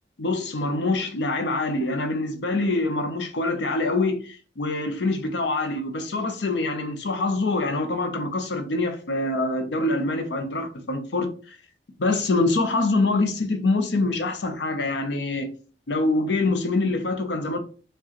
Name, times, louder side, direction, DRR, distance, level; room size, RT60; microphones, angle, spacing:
voice 1, 0.2-11.6 12.0-15.5 15.9-17.6, left 2 dB, 70° left, 0.7 m, -25 dB
4.6 x 2.3 x 2.9 m
head